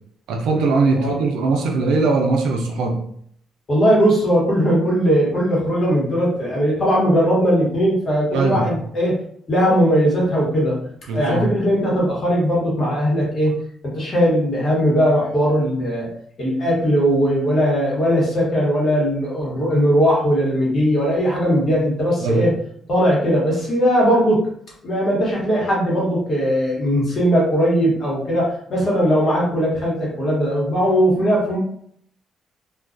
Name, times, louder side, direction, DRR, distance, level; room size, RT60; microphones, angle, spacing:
voice 1, 0.3-3.0 8.3-8.8 11.1-11.5 22.2-22.5, right 3 dB, 90° right, 2 dB, 0.4 m, -20 dB
voice 2, 3.7-9.2 9.5-10.8 11.1-13.6 13.8-16.1 16.4-22.5 22.9-24.4 24.8-31.6, equal, 45° left, -4 dB, 1.2 m, -19 dB
2.3 x 2.2 x 2.5 m, 0.65 s
cardioid pair, 90°, 0 cm